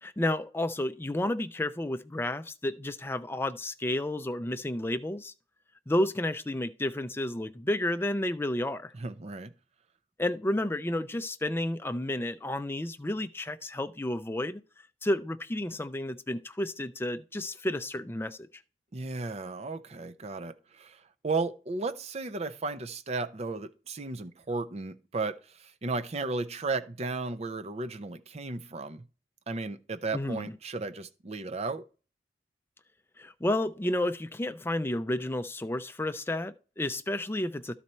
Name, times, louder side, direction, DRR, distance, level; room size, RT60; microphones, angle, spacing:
voice 1, 0.0-5.3 5.9-8.9 10.2-14.6 15.0-18.5 30.1-30.5 33.2-37.7, left 1 dB, 15° left, 0.5 m, -31 dB
voice 2, 8.9-9.5 18.9-29.0 29.5-31.8, right 3 dB, 40° right, 0.6 m, -34 dB
12.0 x 4.1 x 4.4 m
head